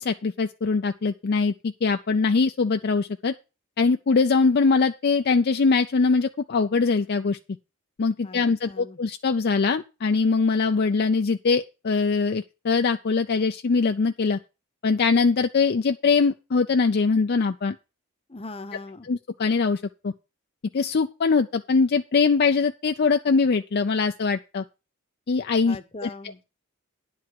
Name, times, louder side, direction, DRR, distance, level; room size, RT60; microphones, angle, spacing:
voice 1, 0.0-3.3 3.8-7.4 8.0-14.4 14.8-17.8 19.1-20.1 20.7-24.6 25.3-26.4, left 4 dB, 50° left, 6 dB, 0.4 m, -22 dB
voice 2, 8.2-9.0 18.3-19.1 25.7-26.4, left 3 dB, 25° left, 10 dB, 0.9 m, -40 dB
10.5 x 4.8 x 7.5 m, 0.29 s
head